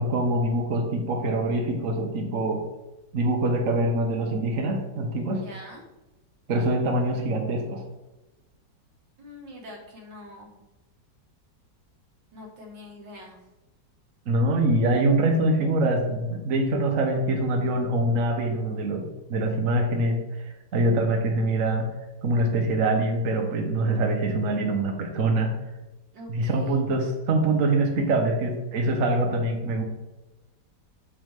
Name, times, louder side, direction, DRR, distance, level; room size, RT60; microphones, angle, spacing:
voice 1, 0.0-2.6 3.1-5.4 6.5-7.9 14.3-20.2 20.7-21.9 22.2-25.5 26.3-29.8, right 2 dB, 55° right, 3 dB, 1.3 m, -24 dB
voice 2, 5.4-5.8 9.2-10.6 12.3-13.4 26.1-26.8, left 1 dB, 85° right, -1 dB, 2.4 m, -44 dB
7.3 x 6.7 x 3.5 m, 1.0 s
omnidirectional pair, 1.9 m